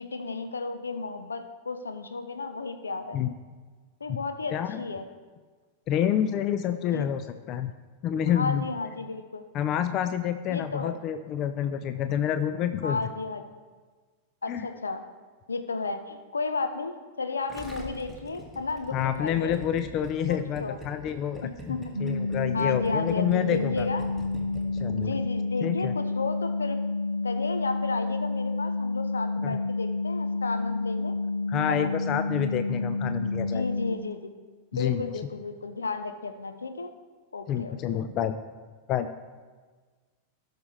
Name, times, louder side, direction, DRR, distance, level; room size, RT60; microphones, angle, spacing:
voice 1, 0.0-3.2 4.0-5.0 6.9-7.1 8.3-9.4 10.5-11.0 12.8-13.4 14.4-15.0 15.5-19.6 20.3-20.8 21.4-21.8 22.5-24.1 24.9-26.8 27.2-31.2 31.7-31.9 33.4-34.2 34.7-36.9 37.3-38.0, left 3 dB, 75° left, 8 dB, 0.9 m, -33 dB
voice 2, 4.5-4.8 5.9-7.7 8.0-8.6 9.5-13.0 14.5-14.7 18.9-23.9 24.8-25.2 25.6-25.9 29.4-29.6 31.5-33.6 34.7-35.1 37.5-38.4 38.9-39.1, left 10 dB, 35° left, 10 dB, 0.5 m, -28 dB
Gurgling, 17.5-25.1 25.3-25.4, equal, ahead, 1.9 m, -43 dB
sound 1, 21.9-34.0, left 3 dB, 80° right, 0.6 m, -29 dB
17.0 x 6.6 x 3.2 m, 1.4 s
figure-of-eight pair, 90°, 0 cm